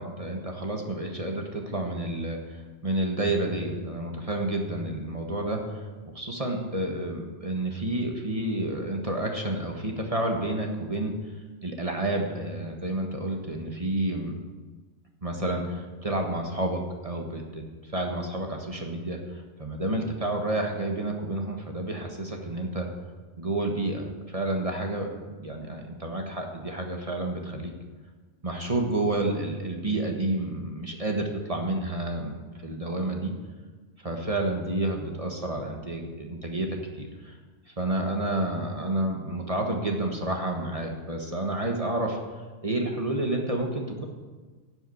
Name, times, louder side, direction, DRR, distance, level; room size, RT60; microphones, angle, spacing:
voice 1, 0.0-5.9 6.1-11.1 11.6-14.3 15.2-22.9 23.4-27.7 28.4-33.3 34.0-37.4 37.7-42.2 42.6-44.1, right 1 dB, 25° right, 2 dB, 1.5 m, -30 dB
10.5 x 8.0 x 8.6 m, 1.3 s
omnidirectional pair, 1.4 m